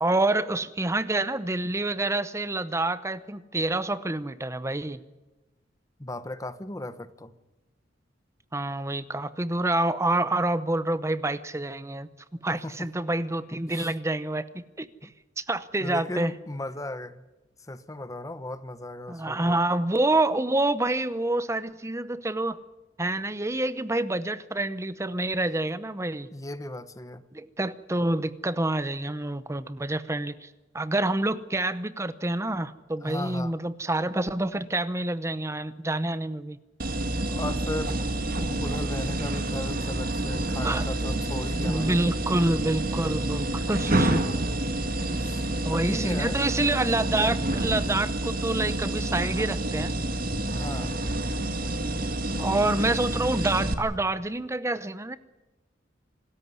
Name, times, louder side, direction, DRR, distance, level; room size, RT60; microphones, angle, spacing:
voice 1, 0.0-5.0 8.5-12.1 12.4-14.9 15.4-16.3 19.1-22.6 23.0-26.3 27.3-30.5 30.7-36.6 40.6-40.8 41.6-44.2 45.6-49.9 52.4-55.2, right 2 dB, 15° right, 0.7 m, -27 dB
voice 2, 6.0-7.3 12.5-12.9 13.7-13.9 15.0-15.1 15.8-17.2 17.6-19.6 26.3-27.2 33.0-33.6 37.3-38.0 38.4-42.1 45.2-46.4 50.5-50.9, left 1 dB, 20° left, 0.9 m, -37 dB
sound 1, 36.8-53.7, right 1 dB, 50° right, 1.9 m, -28 dB
26.5 x 13.5 x 9.6 m
head